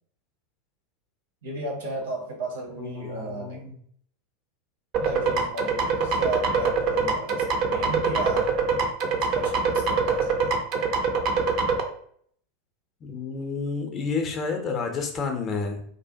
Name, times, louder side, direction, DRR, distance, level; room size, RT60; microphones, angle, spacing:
voice 1, 1.4-3.6 5.0-8.5 9.2-10.6, right 2 dB, 65° right, 0 dB, 0.8 m, -34 dB
voice 2, 2.8-3.7 13.0-15.8, left 4 dB, 30° left, 4 dB, 0.5 m, -30 dB
sound 1, 4.9-11.8, right 5 dB, 40° right, 0.4 m, -24 dB
2.6 x 2.1 x 2.7 m, 0.62 s
figure-of-eight pair, 85°, 0 cm